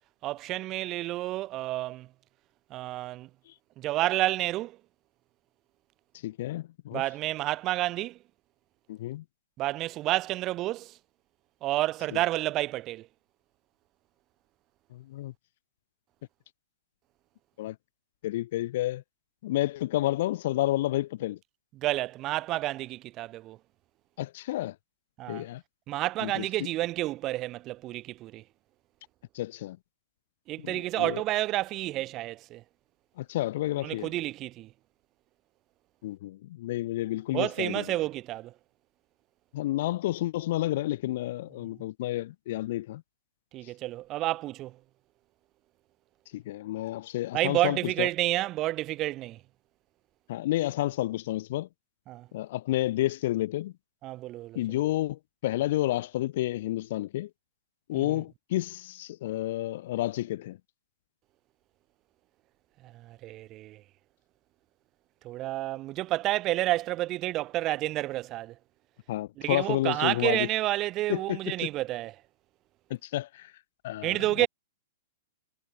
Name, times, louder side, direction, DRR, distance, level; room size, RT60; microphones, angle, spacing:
voice 1, 0.2-2.1 2.7-3.3 3.8-4.8 6.9-8.2 9.6-11.0 11.6-13.1 21.8-23.6 25.2-25.5 25.9-28.4 30.5-32.6 33.8-34.7 37.3-38.5 43.5-44.8 47.3-49.4 52.1-52.3 54.0-54.6 57.9-58.2 62.8-63.8 65.2-68.6 69.4-72.1 74.0-74.5, right 16 dB, 30° right, 0.9 m, -30 dB
voice 2, 6.2-7.0 8.9-9.2 14.9-15.3 17.6-17.8 18.2-19.0 19.4-21.4 24.2-24.8 25.3-25.6 26.2-26.5 29.3-29.8 30.6-31.2 33.2-34.1 36.0-37.8 39.5-43.0 46.3-48.1 50.3-51.7 52.3-53.7 54.6-57.3 57.9-60.6 69.1-70.5 71.1-71.7 72.9-73.5 73.8-74.5, left 15 dB, 55° left, 0.4 m, -30 dB
hypercardioid pair, 140°, 0 cm